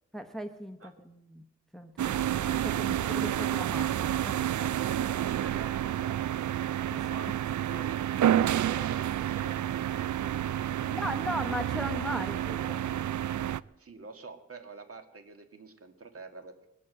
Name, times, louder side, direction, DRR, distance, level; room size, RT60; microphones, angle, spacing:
voice 1, 0.1-1.4 1.7-4.5 6.9-7.1 10.8-12.9, equal, ahead, 6 dB, 1.0 m, -38 dB
sound 1, 2.0-13.6, right 11 dB, 85° right, 0.5 m, -29 dB
voice 2, 2.8-3.5 4.8-7.4 7.7-10.9 13.8-16.7, right 4 dB, 50° right, 6 dB, 1.9 m, -47 dB
20.5 x 8.5 x 7.8 m, 0.88 s
wide cardioid pair, 140°, 29 cm